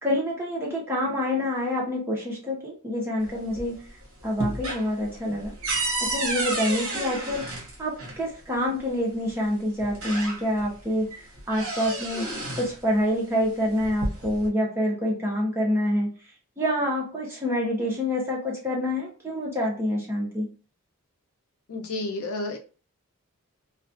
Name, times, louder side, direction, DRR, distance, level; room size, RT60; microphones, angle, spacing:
voice 1, 0.0-3.8 4.2-5.5 6.0-7.4 7.8-11.0 11.5-16.1 16.6-20.5, left 1 dB, 10° right, -4 dB, 0.7 m, -27 dB
sound 1, 3.2-3.9 4.2-8.2 9.3-9.4 9.8-10.7 11.1-12.8 13.7-14.5, right 2 dB, 65° right, 0.9 m, -31 dB
voice 2, 21.7-22.6, left 2 dB, 70° left, 2 dB, 0.5 m, -31 dB
2.3 x 2.3 x 2.5 m, 0.37 s
head